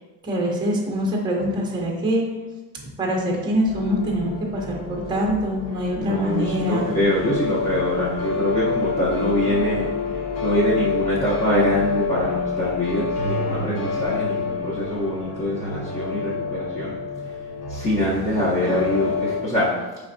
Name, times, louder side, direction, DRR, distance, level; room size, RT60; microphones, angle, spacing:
voice 1, 0.2-2.2 3.0-6.9, equal, 15° right, -1 dB, 0.7 m, -24 dB
sound 1, 3.7-19.4, left 4 dB, 50° left, 1.1 m, -28 dB
voice 2, 6.0-9.9 10.4-17.0 17.7-19.7, left 1 dB, 25° left, -8 dB, 0.8 m, -24 dB
5.2 x 3.3 x 2.6 m, 1.2 s
cardioid pair, 155°, 33 cm